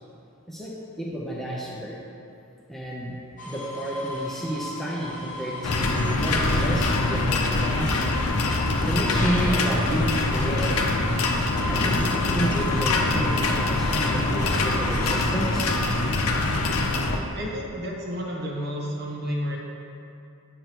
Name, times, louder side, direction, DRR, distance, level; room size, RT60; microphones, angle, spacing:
voice 1, 0.5-2.0 2.7-3.2 3.4-8.1 8.8-10.9 11.7-15.7, equal, ahead, -6 dB, 0.7 m, -30 dB
sound 1, 3.4-15.2, left 1 dB, 35° left, 0.9 m, -36 dB
sound 2, 5.6-17.2, left 2 dB, 80° left, 0.6 m, -24 dB
voice 2, 17.3-19.6, equal, 45° right, -2 dB, 1.1 m, -31 dB
9.3 x 6.7 x 3.0 m, 2.7 s
head